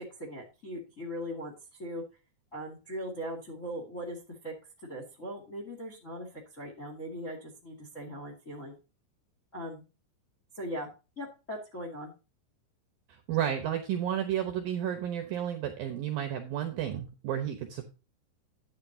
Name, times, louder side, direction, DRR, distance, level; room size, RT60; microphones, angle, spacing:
voice 1, 0.0-2.0 2.5-4.2 4.4-4.5 4.8-6.3 6.5-8.8 9.5-9.8 10.5-10.9 11.1-12.1, equal, 30° left, 2 dB, 1.4 m, -39 dB
voice 2, 13.1-17.8, right 10 dB, 70° right, 6 dB, 2.3 m, -32 dB
11.5 x 9.2 x 2.8 m, 0.30 s
omnidirectional pair, 5.6 m